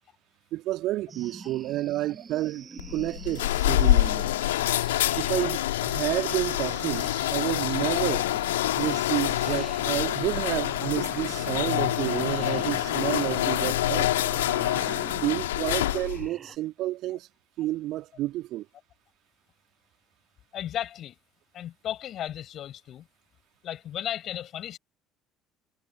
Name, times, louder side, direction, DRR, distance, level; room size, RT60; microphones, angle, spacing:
voice 1, 0.5-4.3 5.2-8.3 8.8-14.2 15.1-17.3 17.6-18.7, right 15 dB, 55° right, 1.9 m, -30 dB
sound 1, 1.1-16.6, right 5 dB, 30° right, 5.3 m, -44 dB
sound 2, 2.8-16.3, left 15 dB, 70° left, 1.9 m, -26 dB
voice 2, 20.5-21.2 21.5-23.1 23.6-24.8, left 11 dB, 45° left, 5.4 m, -35 dB
figure-of-eight pair, 55°, 0 cm